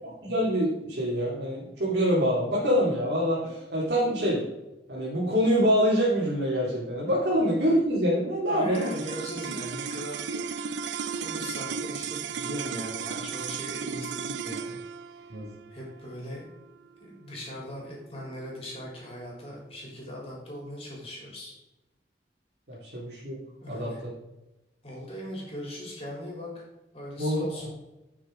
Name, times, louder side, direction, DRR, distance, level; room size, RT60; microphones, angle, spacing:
voice 1, 0.0-4.4 4.9-8.9 15.3-15.5 22.7-23.4 23.7-23.9 27.2-27.4, equal, 70° right, -7 dB, 2.7 m, -25 dB
voice 2, 8.4-10.2 11.2-14.8 15.1-15.3 15.7-16.5 17.0-21.5 23.6-24.0 24.8-26.6 26.9-27.7, equal, 35° left, -3 dB, 3.5 m, -39 dB
sound 1, 8.7-19.2, right 6 dB, 90° right, 0.5 m, -35 dB
10.5 x 6.3 x 3.8 m, 1.0 s
head